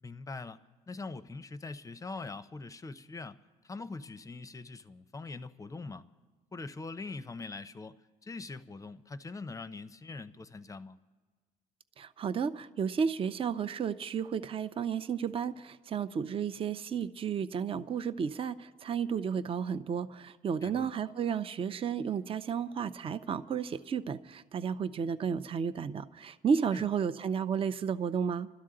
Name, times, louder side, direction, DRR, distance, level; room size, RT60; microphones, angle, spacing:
voice 1, 0.0-3.4 3.6-6.0 6.5-11.0 20.6-20.9 26.7-26.9, left 3 dB, 20° left, 0.6 m, -43 dB
voice 2, 12.0-28.5, right 7 dB, 35° right, 0.5 m, -32 dB
28.5 x 13.0 x 3.8 m
cardioid pair, 110°, 17 cm